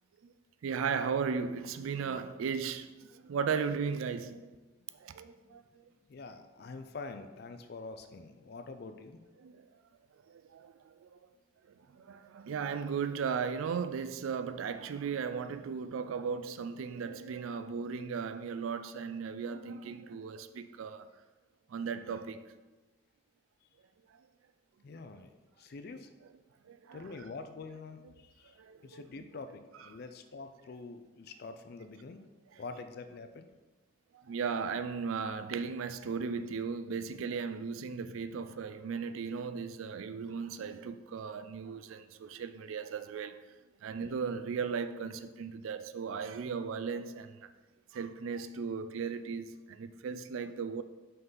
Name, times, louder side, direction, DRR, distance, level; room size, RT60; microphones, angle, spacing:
voice 1, 0.6-4.6 5.0-5.9 9.4-9.7 10.3-11.2 11.7-21.1 21.7-22.4 26.7-27.0 28.4-29.1 34.1-43.4 43.8-47.5 47.9-50.8, right 6 dB, 80° right, 0.4 m, -36 dB
voice 2, 6.0-9.2 24.8-26.1 26.9-32.2 32.6-33.5, left 3 dB, 50° left, 0.4 m, -46 dB
5.6 x 3.9 x 5.4 m
head